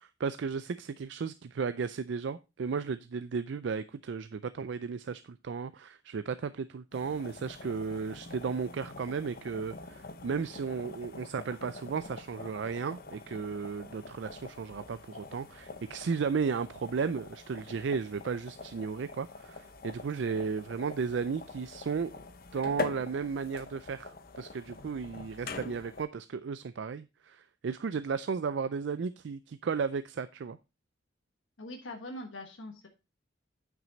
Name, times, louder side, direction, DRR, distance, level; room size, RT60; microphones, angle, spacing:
voice 1, 0.0-22.2 22.5-30.6, right 5 dB, 70° right, 13 dB, 0.4 m, -34 dB
sound 1, 6.9-26.1, left 3 dB, 50° left, 0.8 m, -44 dB
voice 2, 31.6-32.9, left 1 dB, 90° left, 3 dB, 1.3 m, -42 dB
9.0 x 6.0 x 3.9 m, 0.27 s
head